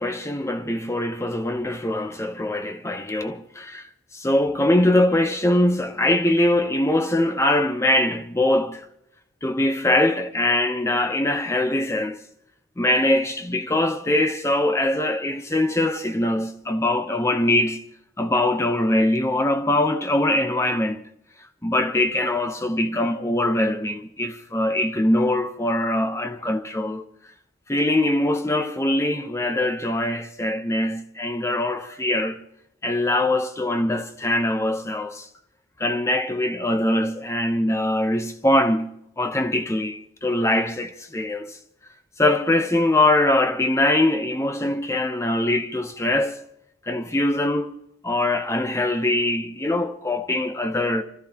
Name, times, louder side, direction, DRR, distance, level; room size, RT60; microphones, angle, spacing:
voice 1, 0.0-8.8 9.4-12.2 12.8-17.8 18.2-21.0 21.6-27.0 27.7-32.4 32.8-35.3 35.8-41.6 42.2-46.4 46.8-47.7 48.0-51.0, left 1 dB, 15° left, 0.9 m, -22 dB
28.0 x 13.5 x 3.0 m
head